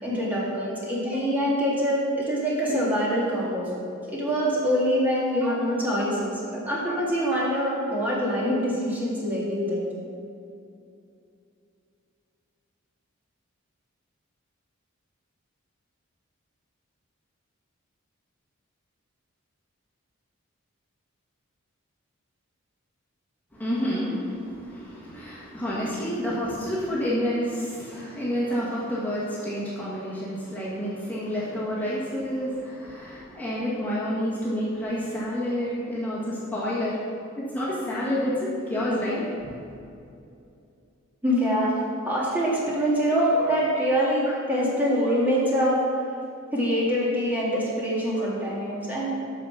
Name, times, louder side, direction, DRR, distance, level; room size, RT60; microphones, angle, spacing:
voice 1, 0.0-3.7 4.1-9.9 41.2-41.8 42.0-45.8 46.5-49.1, equal, 10° right, -6 dB, 2.0 m, -24 dB
voice 2, 23.5-37.0 37.4-38.3 38.7-39.5, equal, 10° left, -8 dB, 1.8 m, -29 dB
9.2 x 6.6 x 5.8 m, 2.5 s
head